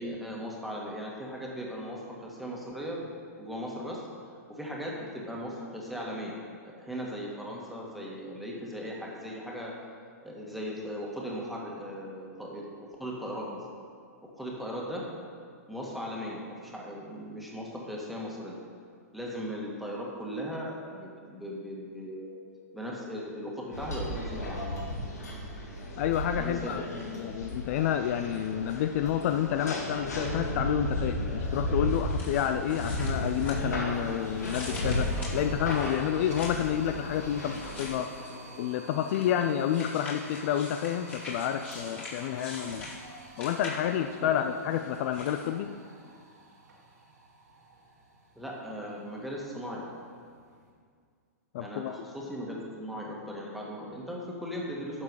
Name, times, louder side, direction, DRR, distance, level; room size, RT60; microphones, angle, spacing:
voice 1, 0.0-3.0 3.4-4.0 4.5-6.3 6.6-9.7 10.2-13.6 14.4-15.0 15.7-18.6 19.1-22.4 22.7-24.6 26.3-26.8 44.2-44.5 48.4-49.9 51.6-55.0, equal, ahead, -3 dB, 1.9 m, -38 dB
sound 1, 23.7-37.9, left 1 dB, 85° left, 2.0 m, -34 dB
voice 2, 26.0-38.1 38.6-42.9 43.4-45.7 51.5-51.9, left 10 dB, 55° left, 8 dB, 0.5 m, -29 dB
sound 2, 31.7-50.7, right 1 dB, 90° right, 2.3 m, -50 dB
sound 3, 31.9-34.0 34.4-36.8 37.5-38.5 39.1-44.1 44.7-45.5, left 2 dB, 20° left, 2.5 m, -44 dB
11.0 x 6.9 x 4.8 m, 2.1 s
hypercardioid pair, 120°, 9 cm